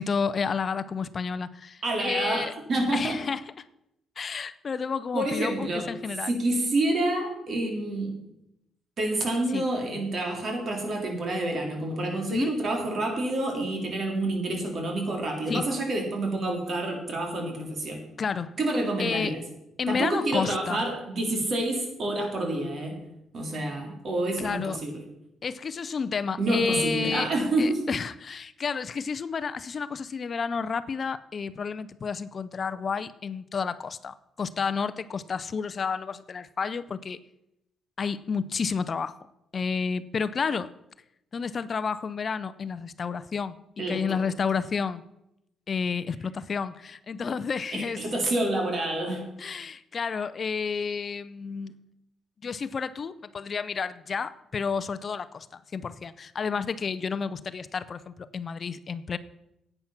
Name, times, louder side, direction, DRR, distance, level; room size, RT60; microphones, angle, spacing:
voice 1, 0.0-2.5 2.9-3.4 4.2-6.4 9.5-9.7 12.3-12.5 15.5-15.7 18.2-18.6 19.0-19.3 19.8-20.8 24.4-24.8 25.4-27.3 27.6-37.2 38.0-39.2 39.5-40.7 41.3-43.6 43.9-45.0 45.7-48.0 49.4-51.8 52.4-59.2, left 5 dB, 45° left, 0.5 m, -31 dB
voice 2, 1.8-3.2 5.1-5.9 6.3-8.3 9.0-18.0 18.6-19.4 19.9-23.0 23.3-24.9 26.4-27.8 43.8-44.2 47.7-49.2, right 2 dB, 50° right, 3.7 m, -28 dB
10.5 x 9.0 x 5.9 m
cardioid pair, 90°, 0 cm